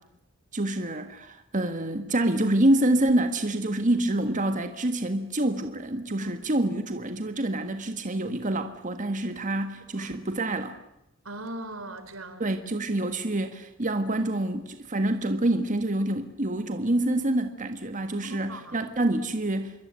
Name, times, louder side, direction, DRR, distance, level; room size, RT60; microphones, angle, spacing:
voice 1, 0.5-10.8 12.4-19.7, right 1 dB, 40° right, 1.6 m, -27 dB
voice 2, 11.3-12.5 18.2-18.7, right 2 dB, 85° right, 3.8 m, -39 dB
27.0 x 23.0 x 9.6 m
head